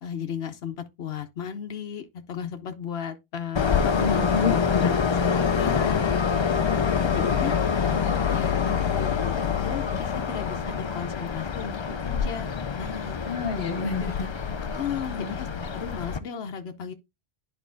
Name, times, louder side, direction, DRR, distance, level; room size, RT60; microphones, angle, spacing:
voice 1, 0.0-12.5 12.8-13.2 14.7-16.9, left 7 dB, 85° left, 1.0 m, -35 dB
Train, 3.5-16.2, left 6 dB, 40° left, 0.4 m, -26 dB
voice 2, 4.0-4.9 13.3-14.3 15.1-15.4, left 5 dB, 60° left, 1.6 m, -29 dB
10.5 x 4.2 x 2.6 m
omnidirectional pair, 1.0 m